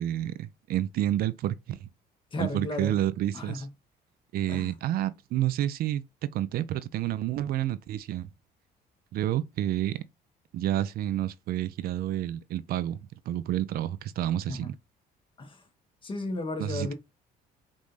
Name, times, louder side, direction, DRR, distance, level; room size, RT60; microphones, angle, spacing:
voice 1, 0.0-1.9 2.4-3.6 4.3-6.0 6.3-8.3 9.1-10.0 10.5-13.0 13.3-14.7 16.6-16.9, right 12 dB, 65° right, 0.4 m, -29 dB
voice 2, 2.3-3.0 3.3-3.7 4.5-4.7 14.5-14.7 15.4-15.6 16.0-16.9, left 2 dB, 30° left, 1.2 m, -34 dB
5.3 x 2.6 x 3.1 m
cardioid pair, 110°, 17 cm